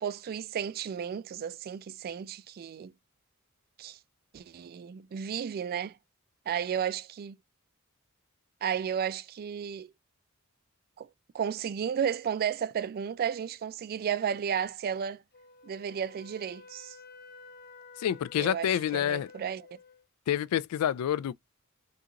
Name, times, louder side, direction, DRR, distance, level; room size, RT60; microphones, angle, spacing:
voice 1, 0.0-2.9 3.8-4.0 4.3-5.9 6.5-7.4 8.6-9.9 11.0-11.1 11.3-15.2 15.6-17.0 18.4-19.8, right 8 dB, 45° right, 0.3 m, -33 dB
Wind instrument woodwind instrument, 15.3-20.1, left 4 dB, 45° left, 0.6 m, -52 dB
voice 2, 18.0-19.3 20.3-21.3, left 10 dB, 85° left, 0.3 m, -28 dB
3.7 x 2.4 x 2.8 m
head